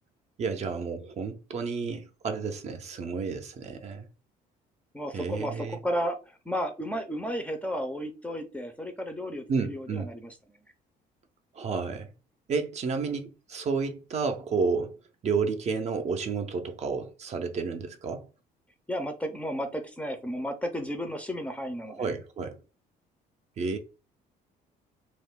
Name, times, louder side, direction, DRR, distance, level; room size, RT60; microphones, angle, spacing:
voice 1, 0.4-4.1 5.1-5.8 9.5-10.1 11.5-12.1 12.5-15.0 15.2-18.3 21.9-22.6 23.6-23.8, right 5 dB, 40° right, 0.5 m, -31 dB
voice 2, 4.9-10.3 18.9-22.1, equal, 10° left, 0.5 m, -33 dB
2.4 x 2.1 x 3.5 m
cardioid pair, 110°, 17 cm